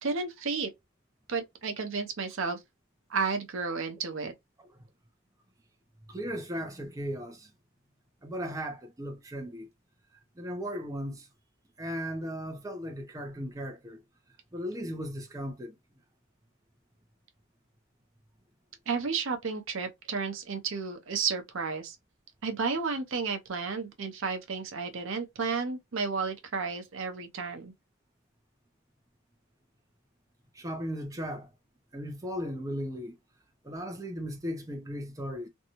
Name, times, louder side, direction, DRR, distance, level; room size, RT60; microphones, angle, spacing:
voice 1, 0.0-0.7 1.3-2.6 3.1-4.3 18.9-22.0 22.4-27.7, right 5 dB, 65° right, 0.7 m, -32 dB
voice 2, 6.1-7.5 8.2-9.7 10.4-11.3 11.8-14.0 14.5-15.7 30.5-31.5 31.9-33.2 33.6-35.5, equal, 15° right, 0.5 m, -36 dB
2.6 x 2.2 x 2.9 m
head